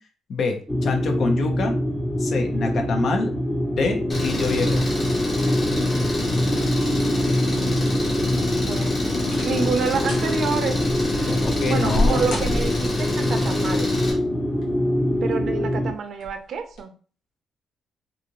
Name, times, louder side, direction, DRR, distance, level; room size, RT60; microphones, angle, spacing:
voice 1, 0.3-1.7 2.2-3.3 3.7-4.8 11.3-12.3, left 4 dB, 60° left, 4 dB, 0.7 m, -26 dB
sound 1, 0.7-15.9, equal, 10° left, 0.7 m, -24 dB
Engine, 4.1-14.1, left 2 dB, 40° left, 1.2 m, -28 dB
voice 2, 7.4-7.9 8.7-9.0 9.4-10.8 11.7-13.9 15.2-16.9, right 5 dB, 60° right, 7 dB, 0.5 m, -28 dB
sound 2, 9.3-9.7 10.0-10.3 10.9-13.1 14.3-14.9 15.3-15.4 16.1-16.4 16.7-16.8, left 1 dB, 75° left, 1.0 m, -28 dB
2.6 x 2.5 x 2.9 m, 0.39 s
cardioid pair, 90°, 0 cm